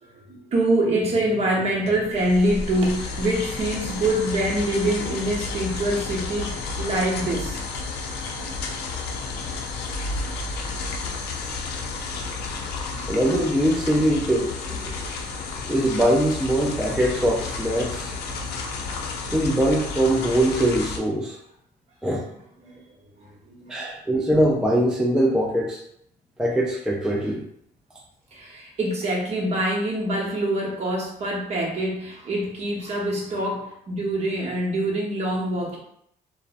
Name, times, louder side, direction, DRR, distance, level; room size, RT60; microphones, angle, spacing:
voice 1, 0.0-7.6 8.4-8.6 10.9-11.1 11.3-11.4 12.9-13.0 22.6-22.9 23.2-23.9 28.3-35.8, right 1 dB, 40° right, -2 dB, 0.8 m, -25 dB
sound 1, 1.8-21.0, left 4 dB, 75° left, 0.5 m, -32 dB
voice 2, 13.1-14.9 15.7-18.2 19.3-21.4 22.0-22.2 23.7-25.8 26.4-27.4, right 1 dB, 5° right, -2 dB, 0.3 m, -22 dB
2.6 x 2.0 x 2.4 m, 0.71 s
cardioid pair, 110°, 17 cm